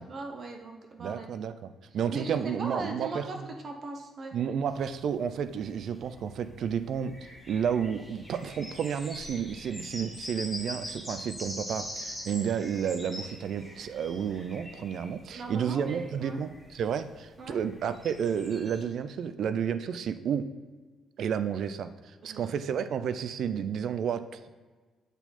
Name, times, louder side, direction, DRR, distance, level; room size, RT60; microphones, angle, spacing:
voice 1, 0.1-1.3 2.1-4.4 15.3-16.4 17.4-17.6 22.2-22.5, right 3 dB, 50° right, 3 dB, 1.0 m, -39 dB
voice 2, 1.0-3.5 4.3-20.5 21.2-24.5, right 7 dB, 65° right, 11 dB, 0.4 m, -31 dB
sound 1, 4.7-18.8, left 1 dB, ahead, 1.3 m, -44 dB
7.9 x 4.5 x 4.2 m, 1.4 s
cardioid pair, 85°, 0 cm